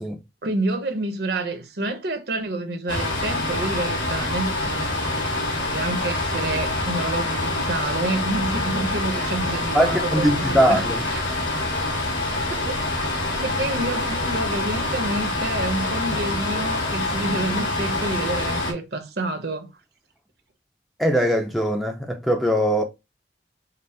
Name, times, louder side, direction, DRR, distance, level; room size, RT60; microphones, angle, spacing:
voice 1, 0.4-4.9 5.7-11.2 12.5-12.8 13.4-19.7, right 2 dB, 60° right, 0.9 m, -28 dB
sound 1, 2.9-18.7, left 2 dB, 85° left, 1.7 m, -26 dB
voice 2, 9.7-11.0 21.0-22.8, equal, ahead, 0.5 m, -21 dB
5.3 x 2.0 x 4.1 m
head